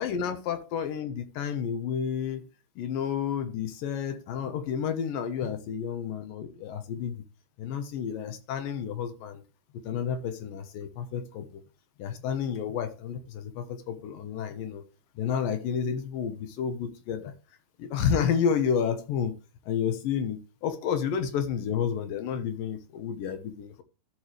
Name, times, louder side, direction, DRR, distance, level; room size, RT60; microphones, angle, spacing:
voice 1, 0.0-2.4 2.8-7.2 7.6-9.4 9.7-11.6 12.0-14.8 15.2-17.3 17.8-19.3 19.7-23.8, left 7 dB, 70° left, 10 dB, 2.5 m, -30 dB
13.5 x 7.1 x 3.2 m, 0.32 s
omnidirectional pair, 4.5 m